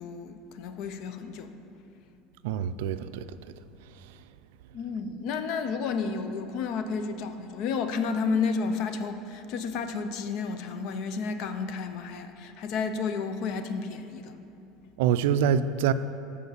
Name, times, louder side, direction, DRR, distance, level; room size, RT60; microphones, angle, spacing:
voice 1, 0.0-1.6 4.7-14.4, left 5 dB, 55° left, 9 dB, 0.6 m, -31 dB
voice 2, 2.4-3.3 3.9-4.2 15.0-15.9, right 8 dB, 80° right, 13 dB, 0.3 m, -25 dB
7.0 x 5.0 x 6.6 m, 2.8 s
supercardioid pair, 135°, 0 cm